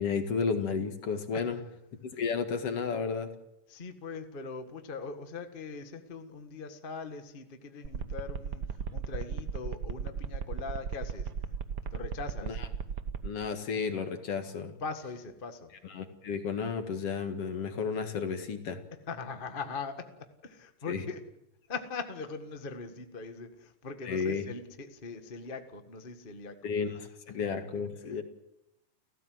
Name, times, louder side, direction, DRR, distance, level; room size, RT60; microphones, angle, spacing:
voice 1, 0.0-1.6 2.1-3.3 12.4-12.6 13.2-14.8 15.9-18.8 20.9-21.0 24.1-24.5 26.6-28.2, left 5 dB, 55° left, 7 dB, 2.6 m, -32 dB
voice 2, 3.7-11.3 11.9-12.6 14.8-15.7 19.1-21.2 21.7-26.7 28.1-28.2, left 4 dB, 25° left, 7 dB, 1.1 m, -41 dB
sound 1, 7.8-13.3, right 6 dB, 65° right, 1.0 m, -35 dB
30.0 x 15.0 x 7.8 m, 0.84 s
omnidirectional pair, 3.5 m